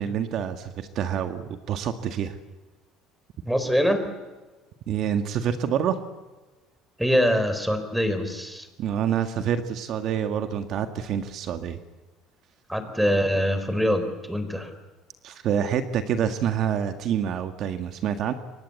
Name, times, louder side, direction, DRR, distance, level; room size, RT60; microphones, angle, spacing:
voice 1, 0.0-2.4 4.9-6.0 8.8-11.8 15.2-18.3, right 8 dB, 55° right, 8 dB, 1.7 m, -27 dB
voice 2, 3.5-4.1 7.0-8.7 12.7-14.7, equal, 5° right, 10 dB, 4.1 m, -24 dB
29.0 x 24.0 x 8.4 m, 1.2 s
cardioid pair, 120°, 0 cm